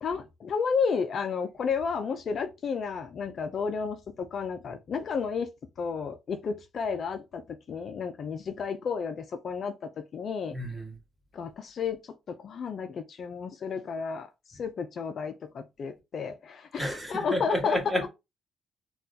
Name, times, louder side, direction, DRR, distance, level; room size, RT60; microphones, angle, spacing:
voice 1, 0.0-5.5 5.8-7.4 7.7-9.7 10.1-10.5 11.3-17.8, left 5 dB, 55° left, 0.4 m, -32 dB
voice 2, 10.5-11.0 16.8-18.1, equal, 5° right, 1.4 m, -31 dB
4.1 x 2.3 x 2.6 m
cardioid pair, 90°, 0 cm